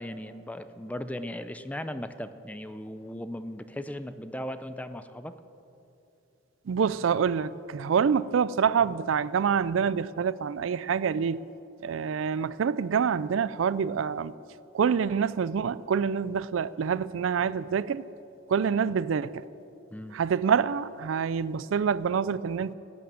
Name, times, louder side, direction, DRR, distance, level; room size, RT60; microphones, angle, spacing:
voice 1, 0.0-5.4 19.9-20.2, left 1 dB, 10° left, 0.5 m, -37 dB
voice 2, 6.7-11.4 11.8-14.3 14.7-18.0 18.5-19.5 20.1-22.7, right 6 dB, 75° right, 0.4 m, -26 dB
16.5 x 9.5 x 7.5 m
head